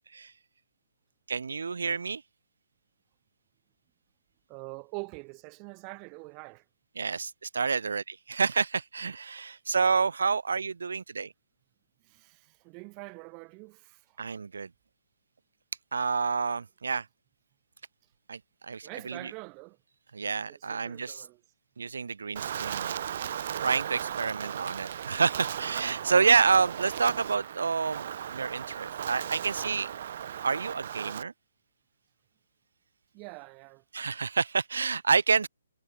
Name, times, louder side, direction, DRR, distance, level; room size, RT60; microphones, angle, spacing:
voice 1, 1.3-2.2 7.0-11.3 14.2-14.7 15.9-17.1 18.3-19.3 20.1-21.2 21.8-23.0 23.6-29.9 30.4-31.3 33.9-35.5, right 5 dB, 70° right, 1.3 m, -28 dB
voice 2, 4.5-6.6 12.0-14.3 18.8-19.8 20.5-21.4 33.1-33.8, right 33 dB, 15° right, 2.8 m, -44 dB
Wind, 22.4-31.2, right 9 dB, 35° right, 0.6 m, -36 dB
hypercardioid pair, 175°, 0 cm